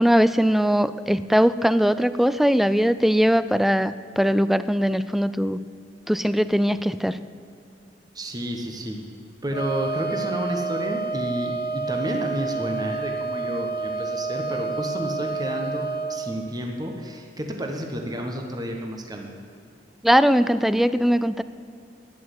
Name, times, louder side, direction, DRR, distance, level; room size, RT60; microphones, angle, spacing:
voice 1, 0.0-5.6 6.1-7.2 20.0-21.4, equal, ahead, 14 dB, 0.4 m, -20 dB
voice 2, 8.1-9.0 9.4-19.3, equal, 20° right, 2 dB, 1.3 m, -30 dB
Wind instrument woodwind instrument, 9.5-16.2, right 4 dB, 65° left, 2.2 m, -29 dB
12.0 x 10.5 x 8.3 m, 2.6 s
head